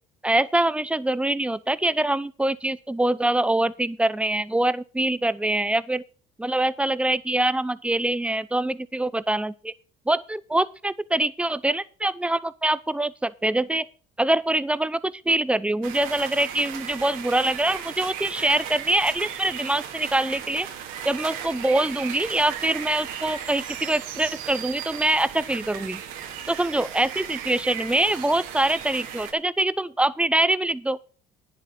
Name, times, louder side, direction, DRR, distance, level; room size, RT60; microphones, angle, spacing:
voice 1, 0.2-6.0 6.4-9.7 10.1-13.8 14.2-20.7 21.0-26.0 26.5-31.0, right 1 dB, 5° right, 17 dB, 0.6 m, -24 dB
sound 1, 15.8-29.3, right 9 dB, 75° right, 2.5 m, -36 dB
9.8 x 8.1 x 6.2 m, 0.41 s
supercardioid pair, 80°, 21 cm